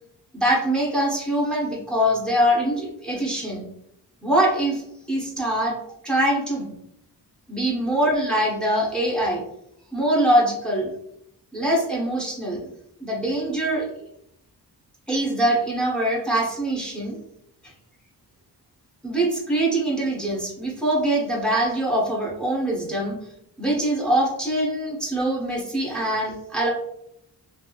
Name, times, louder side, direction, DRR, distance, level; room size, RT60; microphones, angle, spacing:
voice 1, 0.3-3.7 4.2-4.8 5.1-5.8 6.0-6.7 7.5-9.4 9.9-10.9 11.5-12.7 13.0-13.9 15.1-17.2 19.0-23.2 23.6-26.7, right 1 dB, ahead, -5 dB, 1.1 m, -23 dB
3.5 x 2.7 x 2.3 m, 0.77 s
cardioid pair, 85°, 40 cm